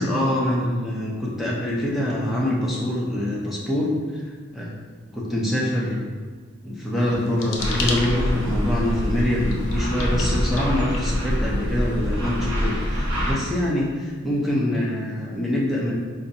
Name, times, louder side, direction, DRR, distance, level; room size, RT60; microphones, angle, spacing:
voice 1, 0.0-4.8 5.1-6.1 6.6-15.9, left 1 dB, ahead, -6 dB, 0.5 m, -25 dB
sound 1, 7.0-11.6, left 4 dB, 65° left, 0.5 m, -35 dB
sound 2, 7.6-13.3, equal, 85° right, 0.9 m, -25 dB
4.2 x 2.6 x 2.6 m, 1.5 s
head